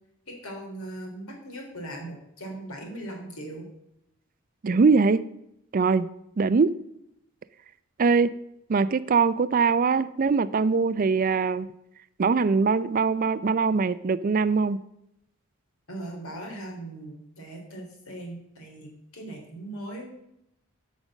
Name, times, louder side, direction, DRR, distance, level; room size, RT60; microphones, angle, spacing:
voice 1, 0.3-3.7 15.9-20.1, right 1 dB, 90° left, 1 dB, 3.3 m, -39 dB
voice 2, 4.6-5.2 5.7-6.1 6.4-6.7 8.0-8.3 8.7-11.7 12.2-14.8, right 4 dB, 40° right, 16 dB, 0.4 m, -22 dB
10.5 x 5.2 x 7.3 m, 0.80 s
head